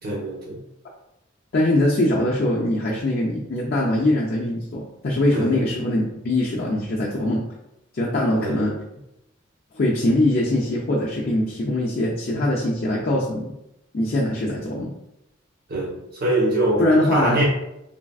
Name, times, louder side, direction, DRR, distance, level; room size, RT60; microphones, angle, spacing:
voice 1, 0.0-0.6 5.3-5.6 8.4-8.7 15.7-17.5, right 1 dB, 50° right, -4 dB, 0.9 m, -24 dB
voice 2, 1.5-7.5 7.9-8.7 9.7-13.5 13.9-14.9 16.8-17.5, left 1 dB, 45° left, -4 dB, 0.4 m, -22 dB
3.2 x 2.4 x 2.3 m, 0.85 s
head